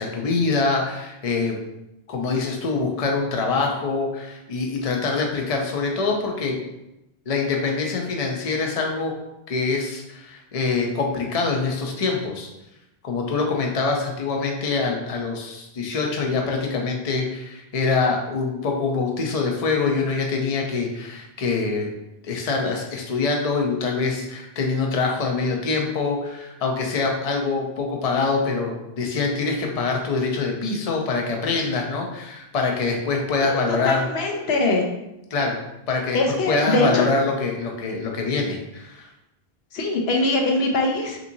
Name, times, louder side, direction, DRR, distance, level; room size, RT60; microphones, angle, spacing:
voice 1, 0.0-1.6 2.1-6.6 7.3-9.1 9.5-12.5 13.0-21.9 22.2-34.1 35.3-35.6 35.9-36.2 36.5-39.1, left 4 dB, 40° left, 1 dB, 0.6 m, -24 dB
voice 2, 33.4-34.9 36.1-37.0 39.7-41.2, left 2 dB, 85° left, 2 dB, 0.9 m, -22 dB
5.4 x 2.8 x 2.7 m, 0.90 s
omnidirectional pair, 1.0 m